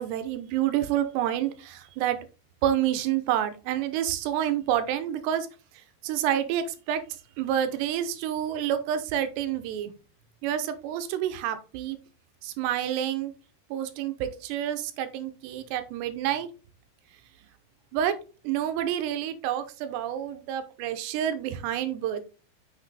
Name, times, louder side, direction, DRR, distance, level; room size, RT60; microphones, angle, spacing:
voice 1, 0.0-2.2 2.6-5.5 5.7-7.0 7.4-9.9 10.4-12.0 12.4-13.3 13.7-16.5 17.9-18.2 18.4-22.2, right 10 dB, 75° right, 9 dB, 2.8 m, -28 dB
6.3 x 6.2 x 3.3 m, 0.34 s
omnidirectional pair, 5.4 m